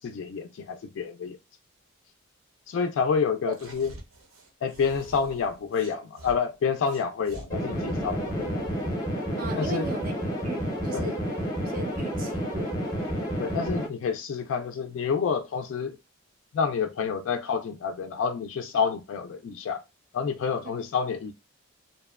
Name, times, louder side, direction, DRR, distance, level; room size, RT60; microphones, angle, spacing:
voice 1, 0.0-1.4 2.7-3.9 4.6-8.6 9.6-9.9 10.9-11.1 13.4-16.0 16.5-19.8 20.1-21.3, left 6 dB, 65° left, 0.3 m, -28 dB
sound 1, 3.5-6.4 6.8-8.9, right 2 dB, 85° right, 0.7 m, -46 dB
sound 2, 7.5-13.9, equal, 20° left, 0.6 m, -30 dB
voice 2, 9.4-11.2 11.6-12.8 20.7-20.8, right 3 dB, 40° right, 0.3 m, -37 dB
2.6 x 2.1 x 2.2 m
head